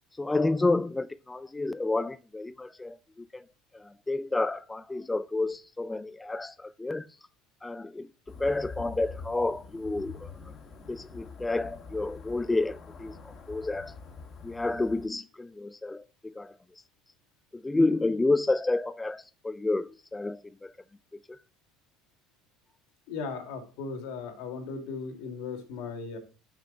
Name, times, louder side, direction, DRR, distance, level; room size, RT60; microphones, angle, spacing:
voice 1, 0.2-3.5 3.7-7.1 7.6-10.4 10.9-14.0 14.4-16.6 17.5-20.7 21.3-21.4, left 2 dB, 10° left, 0.3 m, -30 dB
sound 1, 8.3-15.1, left 4 dB, 40° left, 1.3 m, -45 dB
voice 2, 23.1-26.2, left 4 dB, 80° left, 2.2 m, -37 dB
7.4 x 6.2 x 3.9 m
supercardioid pair, 110°, 0 cm